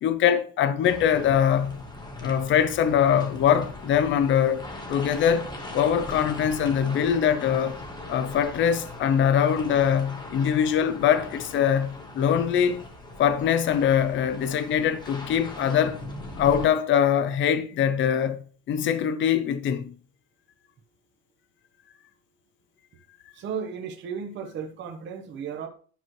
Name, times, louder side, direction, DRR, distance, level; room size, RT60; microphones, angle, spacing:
voice 1, 0.0-1.8 2.2-7.8 8.1-12.9 13.2-16.0 16.4-19.9, left 8 dB, 35° left, 0.6 m, -23 dB
sound 1, 0.8-16.7, left 2 dB, 15° left, 1.0 m, -40 dB
voice 2, 23.3-25.7, right 7 dB, 35° right, 0.9 m, -34 dB
10.0 x 6.1 x 3.0 m
cardioid pair, 180°, 33 cm